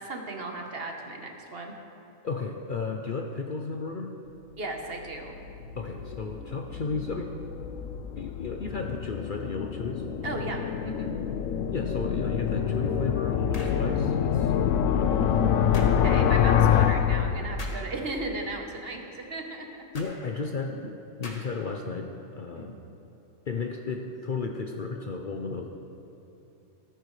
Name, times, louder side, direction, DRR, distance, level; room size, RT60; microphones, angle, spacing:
voice 1, 0.0-1.7 4.5-5.4 10.2-11.1 14.4-14.5 15.8-19.6 22.5-22.8, right 2 dB, 50° right, 2 dB, 1.3 m, -36 dB
voice 2, 2.2-4.1 5.7-7.3 8.2-10.0 11.7-15.3 19.9-22.8 23.5-25.7, left 4 dB, 50° left, 3 dB, 0.7 m, -34 dB
sound 1, 5.0-18.0, left 8 dB, 80° left, 1.0 m, -26 dB
sound 2, 13.5-13.8 15.7-16.0 17.6-17.9 19.9-20.1 21.2-21.6, left 2 dB, 30° left, 1.2 m, -42 dB
15.0 x 13.5 x 3.2 m, 2.9 s
omnidirectional pair, 1.4 m